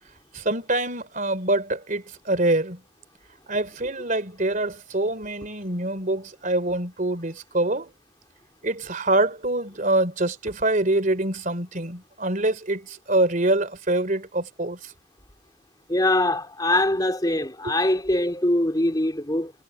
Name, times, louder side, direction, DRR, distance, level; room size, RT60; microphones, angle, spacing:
voice 1, 0.3-2.8 3.5-7.9 8.6-14.8 17.6-17.7, right 2 dB, 40° right, 3.6 m, -25 dB
voice 2, 15.9-19.5, left 1 dB, 20° left, 3.2 m, -23 dB
head